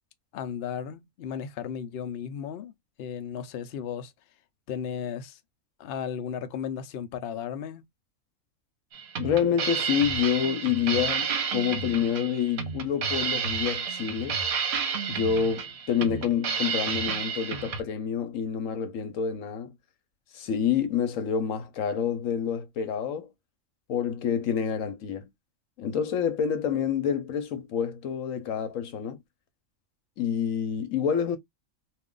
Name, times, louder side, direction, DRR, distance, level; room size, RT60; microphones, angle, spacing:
voice 1, 0.3-2.7 3.0-4.1 4.7-5.4 5.8-7.8, left 8 dB, 60° left, 0.7 m, -35 dB
sound 1, 8.9-17.8, right 6 dB, 55° right, 1.0 m, -31 dB
voice 2, 9.2-14.4 15.1-19.7 20.3-23.3 23.9-25.3 25.8-29.2 30.2-31.4, left 8 dB, 80° left, 1.1 m, -28 dB
2.5 x 2.4 x 3.6 m
omnidirectional pair, 1.4 m